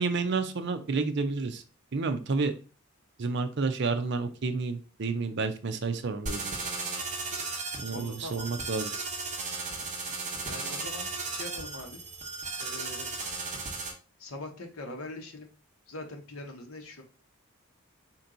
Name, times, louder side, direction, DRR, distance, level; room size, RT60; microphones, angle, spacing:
voice 1, 0.0-1.6 1.9-2.5 3.2-6.7 7.8-8.9, right 4 dB, 55° right, 9 dB, 0.5 m, -30 dB
voice 2, 5.7-6.1 7.9-8.5 10.4-12.0 12.6-13.1 14.2-15.5 15.9-17.0, left 2 dB, 85° left, 4 dB, 1.0 m, -42 dB
sound 1, 6.3-13.9, right 3 dB, 35° right, 1.1 m, -35 dB
4.4 x 2.9 x 3.8 m, 0.35 s
head